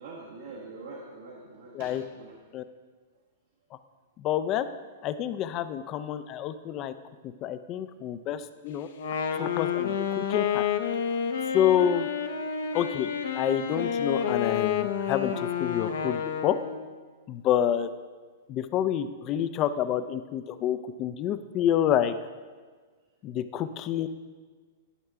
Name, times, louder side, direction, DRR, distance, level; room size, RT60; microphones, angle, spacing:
voice 1, 0.0-2.3, right 3 dB, 75° right, -3 dB, 1.2 m, -44 dB
voice 2, 4.2-4.7 5.0-6.9 7.4-8.9 9.4-10.7 11.5-12.1 12.7-13.1 13.4-16.6 17.3-17.9 18.5-22.1 23.2-24.1, left 10 dB, 40° left, 12 dB, 0.4 m, -28 dB
Wind instrument woodwind instrument, 8.9-16.9, left 8 dB, 75° left, 0.7 m, -29 dB
11.0 x 5.5 x 3.6 m, 1.4 s
hypercardioid pair, 110°, 0 cm